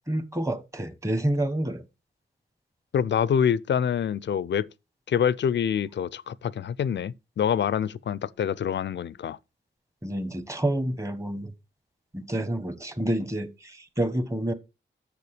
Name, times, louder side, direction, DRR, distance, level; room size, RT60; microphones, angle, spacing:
voice 1, 0.1-1.9 10.0-11.5 12.1-14.5, right 1 dB, 15° right, 1.5 m, -28 dB
voice 2, 2.9-4.7 5.1-9.4, left 8 dB, 65° left, 0.5 m, -26 dB
7.0 x 6.9 x 4.9 m
cardioid pair, 75°, 20 cm